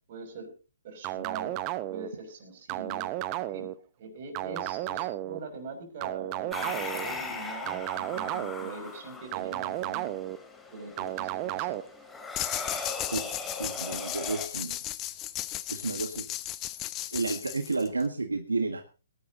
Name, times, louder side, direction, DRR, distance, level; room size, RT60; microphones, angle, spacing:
voice 1, 0.1-0.5 0.8-1.5 1.9-3.1 3.4-3.7 4.0-10.3 10.7-11.8, right 4 dB, 45° right, 5 dB, 6.3 m, -43 dB
sound 1, 1.0-2.1 2.7-3.7 4.3-5.4 6.0-7.0 7.7-8.7 9.3-10.4 11.0-11.8, right 15 dB, 30° right, 0.9 m, -33 dB
sound 2, 6.5-14.5, left 3 dB, 10° left, 2.5 m, -39 dB
sound 3, 12.4-18.1, left 15 dB, 25° left, 0.8 m, -36 dB
voice 2, 13.5-14.8 15.7-16.2 17.1-18.8, right 3 dB, 90° right, 6 dB, 1.7 m, -31 dB
19.5 x 11.5 x 4.0 m, 0.34 s
hypercardioid pair, 135°, 0 cm